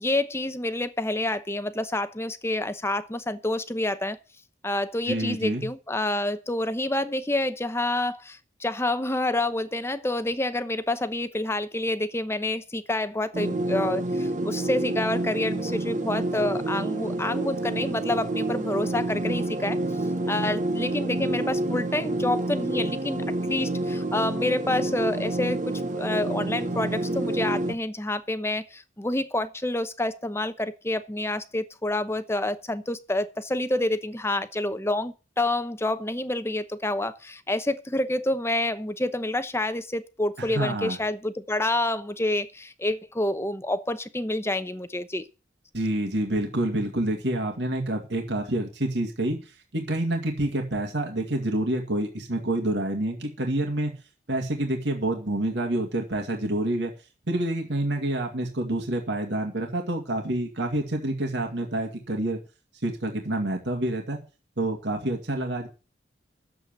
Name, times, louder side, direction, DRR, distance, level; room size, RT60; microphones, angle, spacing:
voice 1, 0.0-4.2 4.6-19.8 20.3-45.2, left 1 dB, 15° left, 0.8 m, -28 dB
voice 2, 5.1-5.6 40.4-41.0 45.7-53.9 54.3-56.9 57.3-62.4 62.8-64.2 64.6-65.7, right 1 dB, 65° right, 2.2 m, -28 dB
sound 1, 13.3-27.7, right 2 dB, 40° right, 1.0 m, -28 dB
10.0 x 7.8 x 8.9 m
head